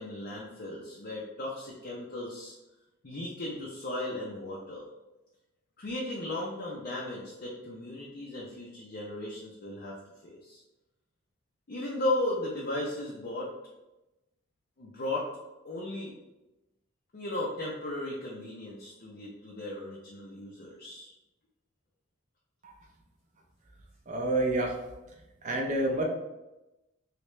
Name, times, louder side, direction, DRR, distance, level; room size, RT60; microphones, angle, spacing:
voice 1, 0.0-2.5 3.0-4.9 5.8-9.9 10.2-10.6 11.7-13.5 14.8-15.3 15.6-16.1 17.1-21.1, left 1 dB, 45° left, -4 dB, 0.5 m, -36 dB
voice 2, 24.1-24.8 25.4-26.0, right 1 dB, 35° right, 0 dB, 0.6 m, -28 dB
3.2 x 2.9 x 3.1 m, 0.99 s
head